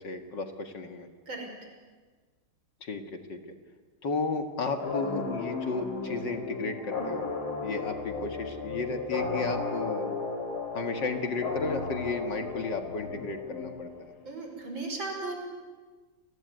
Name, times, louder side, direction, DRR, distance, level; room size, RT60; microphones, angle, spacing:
voice 1, 0.0-1.1 2.8-3.4 4.0-7.3 7.6-10.1 10.7-14.1, left 3 dB, 60° left, 6 dB, 2.5 m, -33 dB
sound 1, 4.8-14.3, left 4 dB, 85° left, 4.2 m, -35 dB
voice 2, 14.2-15.4, right 3 dB, 65° right, 3 dB, 6.1 m, -36 dB
28.5 x 20.5 x 9.5 m, 1.4 s
omnidirectional pair, 2.3 m